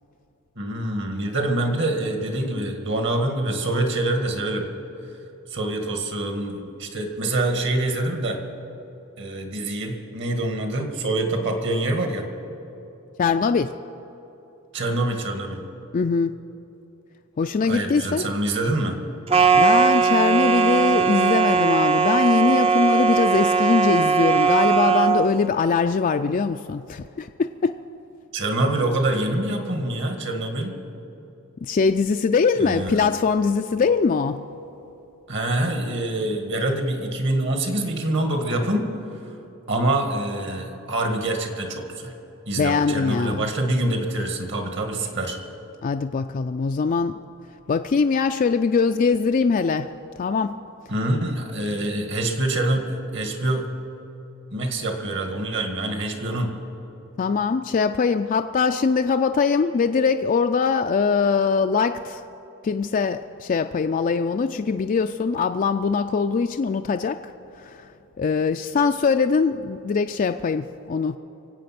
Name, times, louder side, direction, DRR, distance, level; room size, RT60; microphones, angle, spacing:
voice 1, 0.6-4.7 5.5-8.4 9.2-12.3 14.7-15.6 17.6-19.0 28.3-30.8 32.6-33.0 35.3-38.9 39.7-42.1 42.5-45.4 50.9-53.6 54.5-56.5, right 1 dB, 55° right, 4 dB, 1.9 m, -25 dB
voice 2, 13.2-13.7 15.9-16.3 17.4-18.3 19.5-27.8 31.6-34.4 42.6-43.5 45.8-47.2 47.7-49.9 50.2-50.6 57.2-62.2 62.6-67.3 67.6-67.9 68.2-71.2, left 5 dB, 40° left, 7 dB, 0.3 m, -22 dB
sound 1, 19.3-25.3, right 5 dB, 25° right, 0.6 m, -19 dB
24.0 x 8.5 x 5.9 m, 2.9 s
head